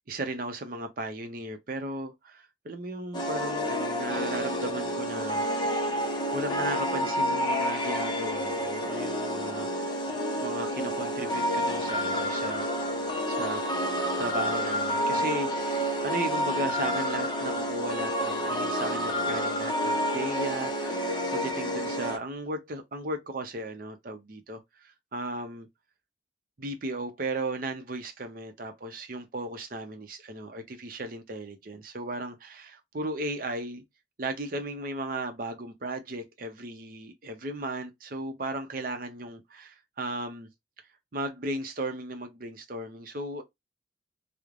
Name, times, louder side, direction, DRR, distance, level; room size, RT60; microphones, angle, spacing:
voice 1, 0.1-5.7 6.3-10.1 10.4-12.7 13.3-13.6 14.2-25.7 26.6-33.8 34.2-40.5 41.1-43.4, right 2 dB, 50° right, 0.6 m, -36 dB
sound 1, 3.1-22.2, equal, 25° left, 0.5 m, -29 dB
3.1 x 2.0 x 2.4 m
head